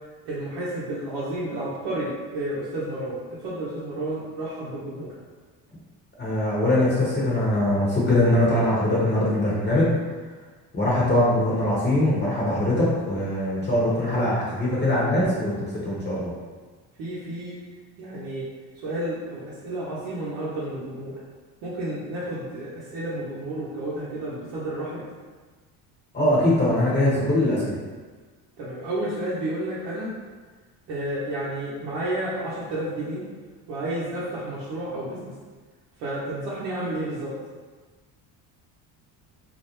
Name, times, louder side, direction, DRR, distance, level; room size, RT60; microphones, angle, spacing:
voice 1, 0.3-5.1 17.0-17.6 18.0-18.5 18.8-21.2 21.6-25.0 28.6-30.1 30.9-33.2 33.7-35.3 36.0-37.3, right 1 dB, 75° right, -9 dB, 0.7 m, -31 dB
voice 2, 6.2-9.9 10.7-16.3 26.1-27.7, left 1 dB, 25° left, -7 dB, 0.8 m, -22 dB
2.5 x 2.0 x 2.8 m, 1.4 s
supercardioid pair, 80°, 41 cm